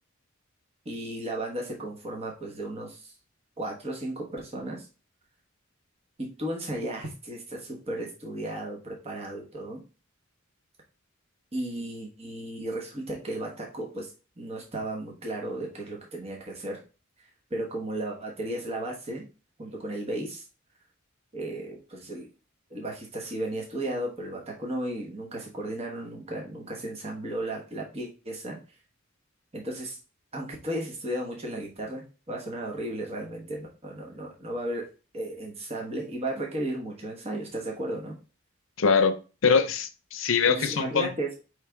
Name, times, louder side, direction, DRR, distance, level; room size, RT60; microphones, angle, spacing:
voice 1, 0.8-3.1 3.6-4.9 6.2-9.8 11.5-14.1 14.4-16.8 17.5-19.2 19.6-20.4 21.3-22.3 22.7-28.6 29.5-30.0 30.3-34.9 35.1-38.1 40.5-41.4, right 1 dB, 30° right, -1 dB, 1.0 m, -34 dB
voice 2, 38.8-39.1 39.4-41.1, left 5 dB, 70° left, 9 dB, 0.6 m, -23 dB
4.7 x 3.3 x 3.3 m, 0.33 s
head